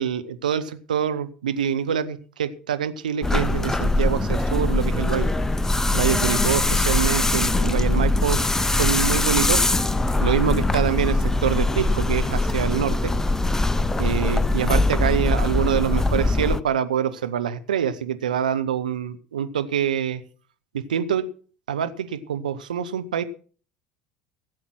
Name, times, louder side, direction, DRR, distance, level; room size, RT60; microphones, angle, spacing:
voice 1, 0.0-5.3 5.9-8.4 8.7-9.6 10.2-13.1 14.0-20.2 20.7-21.3 21.7-23.2, right 9 dB, 75° right, 10 dB, 1.1 m, -25 dB
sound 1, 3.2-16.6, left 2 dB, 10° left, 0.8 m, -22 dB
16.5 x 7.9 x 6.1 m, 0.41 s
figure-of-eight pair, 70°, 4 cm